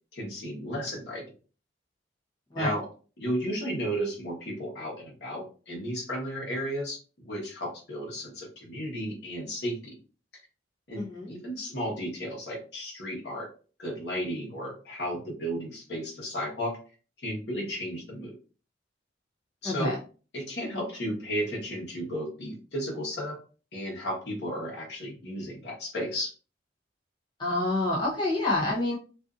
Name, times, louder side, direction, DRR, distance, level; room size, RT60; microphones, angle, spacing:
voice 1, 0.1-1.2 2.6-2.8 3.2-9.9 10.9-11.0 11.3-13.5 13.8-16.8 17.2-18.3 19.6-19.9 20.3-23.4 23.7-26.3, equal, 65° left, -2 dB, 1.1 m, -34 dB
voice 2, 11.0-11.3 19.6-20.0 27.4-29.0, left 2 dB, 25° left, -5 dB, 0.7 m, -27 dB
2.5 x 2.5 x 2.4 m, 0.37 s
head